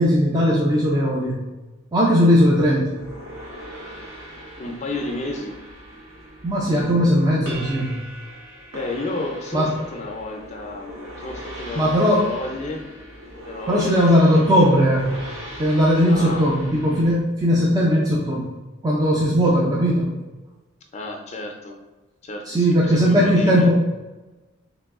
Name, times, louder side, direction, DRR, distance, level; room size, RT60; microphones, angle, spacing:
voice 1, 0.0-1.4 1.9-3.0 6.4-8.0 9.5-9.7 11.8-12.3 13.7-15.2 15.6-18.5 18.8-20.2 22.5-23.7, equal, 20° right, -4 dB, 0.4 m, -18 dB
sound 1, 2.9-17.2, equal, 80° right, 1.1 m, -39 dB
voice 2, 4.6-5.6 8.7-12.8 13.4-14.1 14.3-14.8 16.1-16.4 20.9-21.8 22.2-23.7, left 2 dB, 35° left, 2 dB, 0.5 m, -32 dB
3.3 x 3.0 x 3.5 m, 1.1 s
head